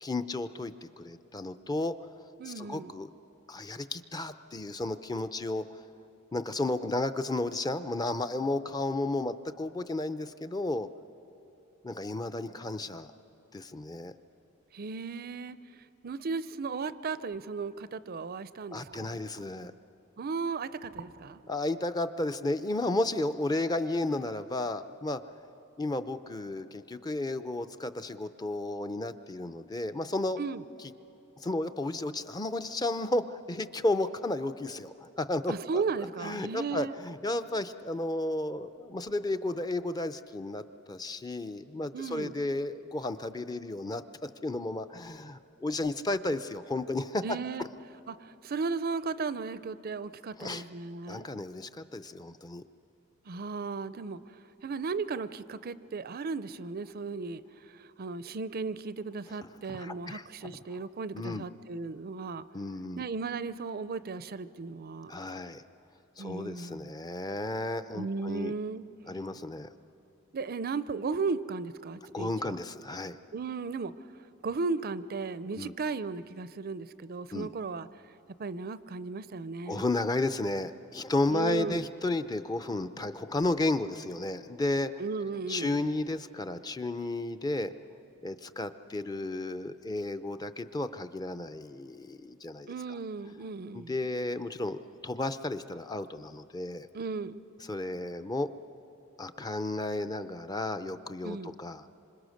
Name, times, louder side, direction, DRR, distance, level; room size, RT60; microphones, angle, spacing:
voice 1, 0.0-2.1 2.4-3.1 3.5-5.8 6.3-10.9 11.8-13.1 13.5-14.1 18.7-19.7 21.5-25.2 25.8-30.4 31.4-35.8 36.2-47.4 50.4-50.6 51.1-52.6 59.4-60.2 61.1-61.4 62.5-63.0 65.1-65.6 66.2-68.5 69.1-69.7 72.1-73.2 75.5-75.7 77.3-77.5 79.7-84.9 85.5-87.7 88.2-93.0 93.7-94.8 95.0-96.9 97.7-98.5 99.2-101.9, left 2 dB, 20° left, 10 dB, 0.5 m, -33 dB
voice 2, 2.4-2.9 14.7-15.6 16.0-19.3 20.2-21.4 30.4-30.6 35.5-36.9 41.9-42.3 47.2-47.7 48.1-51.3 53.2-57.4 57.7-62.4 63.0-65.1 66.2-66.9 67.9-68.8 70.3-72.6 73.3-73.9 74.4-77.9 78.4-79.9 81.3-81.9 85.0-85.8 92.7-93.9 96.9-97.4 101.2-101.5, right 4 dB, 45° right, 15 dB, 0.5 m, -35 dB
26.5 x 26.0 x 6.4 m, 2.9 s
head